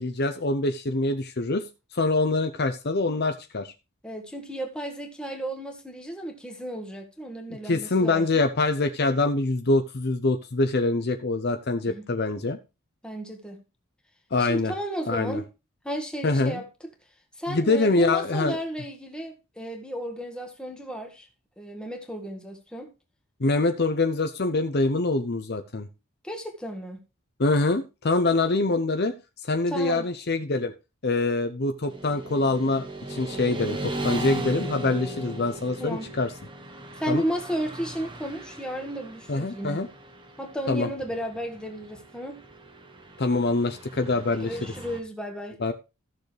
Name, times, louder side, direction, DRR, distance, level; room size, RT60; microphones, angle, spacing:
voice 1, 0.0-1.7 1.9-3.7 7.6-12.6 14.3-14.7 15.1-15.4 16.2-16.6 17.5-18.6 23.4-25.9 27.4-29.1 29.4-30.7 31.0-36.3 37.1-37.2 39.3-39.9 40.7-40.9 43.2-44.5 45.6-45.7, left 2 dB, 50° left, 0.7 m, -25 dB
voice 2, 4.0-8.4 11.9-12.1 13.0-13.6 14.4-15.5 15.8-16.7 17.4-21.3 21.6-22.9 26.2-27.0 29.7-30.1 35.8-36.1 37.0-39.8 40.4-42.4 44.3-45.6, equal, 5° left, 1.6 m, -33 dB
Motorcycle / Traffic noise roadway noise, 31.9-45.0, right 1 dB, 20° right, 1.2 m, -38 dB
14.5 x 6.6 x 3.3 m
head